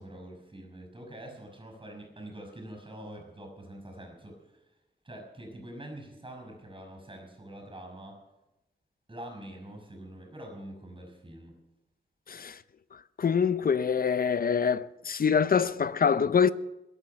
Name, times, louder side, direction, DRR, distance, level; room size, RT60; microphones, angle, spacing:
voice 1, 0.0-4.6 5.0-8.2 9.1-11.6, right 1 dB, 25° right, 5.7 m, -45 dB
voice 2, 12.3-12.6 12.9-16.5, left 6 dB, 55° left, 0.6 m, -25 dB
22.5 x 9.0 x 5.7 m
wide cardioid pair, 100°, 18 cm